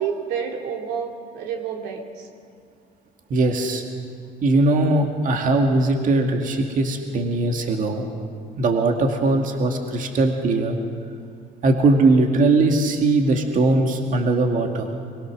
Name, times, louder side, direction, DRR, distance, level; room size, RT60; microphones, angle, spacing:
voice 1, 0.0-2.3, right 7 dB, 90° right, 2 dB, 2.8 m, -29 dB
voice 2, 3.3-3.8 4.4-8.1 8.6-10.8 11.6-14.9, right 2 dB, 50° right, 3 dB, 2.1 m, -20 dB
23.5 x 21.5 x 6.4 m, 2.3 s
cardioid pair, 110°, 17 cm